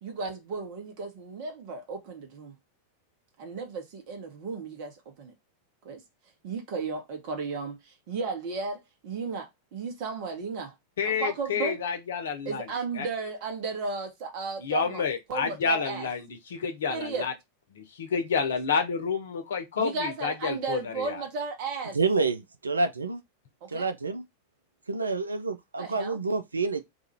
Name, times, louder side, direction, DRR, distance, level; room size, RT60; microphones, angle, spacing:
voice 1, 0.0-2.5 3.4-5.3 5.8-6.0 6.4-10.7 11.0-11.8 12.4-15.0 15.3-16.1 16.9-17.3 18.4-18.5 19.8-22.0 23.6-23.9 25.8-26.2, right 4 dB, 45° right, 1.2 m, -34 dB
voice 2, 11.0-12.7 13.0-13.1 14.6-17.3 17.7-21.2, left 5 dB, 65° left, 0.8 m, -29 dB
voice 3, 21.9-23.2 23.7-24.2 24.9-26.8, right 3 dB, 75° right, 0.4 m, -28 dB
2.7 x 2.5 x 4.2 m
figure-of-eight pair, 90°, 0 cm